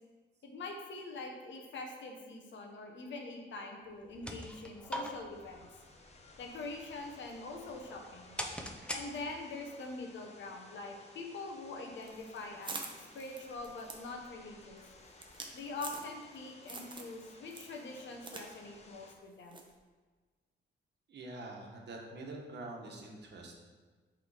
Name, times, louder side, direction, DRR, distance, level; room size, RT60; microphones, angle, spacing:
voice 1, 0.4-5.7 6.4-8.4 8.9-14.8 15.5-19.7, left 3 dB, 70° left, 2 dB, 1.2 m, -44 dB
sound 1, 3.9-9.6, equal, 5° left, 0.6 m, -45 dB
sound 2, 5.3-19.1, left 3 dB, 35° left, 0.8 m, -58 dB
sound 3, 12.0-16.4 16.7-17.2 17.5-18.5 18.7-18.8 19.5-19.7, right 3 dB, 25° right, 0.8 m, -45 dB
voice 2, 21.1-23.5, right 2 dB, 60° right, 0 dB, 1.3 m, -45 dB
8.2 x 3.8 x 4.9 m, 1.4 s
wide cardioid pair, 140°, 19 cm